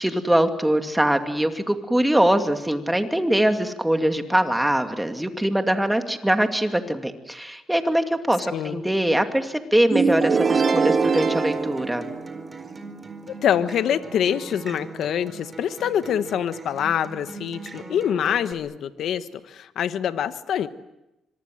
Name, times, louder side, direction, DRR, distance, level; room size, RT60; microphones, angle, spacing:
voice 1, 0.0-12.0, right 1 dB, 5° right, 6 dB, 2.4 m, -22 dB
voice 2, 8.5-8.8 13.3-20.7, left 9 dB, 70° left, 12 dB, 1.2 m, -25 dB
sound 1, 9.9-12.7, right 5 dB, 45° right, 2.2 m, -22 dB
Acoustic guitar, 10.5-18.5, right 3 dB, 25° right, 4.4 m, -41 dB
25.5 x 23.5 x 7.8 m, 0.94 s
cardioid pair, 90°, 0 cm